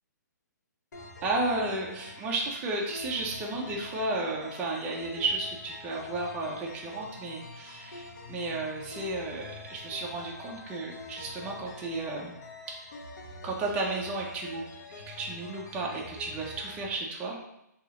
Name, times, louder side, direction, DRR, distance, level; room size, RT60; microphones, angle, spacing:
sound 1, 0.9-16.9, left 3 dB, 65° left, 0.7 m, -46 dB
voice 1, 1.2-12.4 13.4-17.4, right 2 dB, 15° right, -2 dB, 0.4 m, -33 dB
3.8 x 2.3 x 2.8 m, 0.84 s
hypercardioid pair, 155°, 10 cm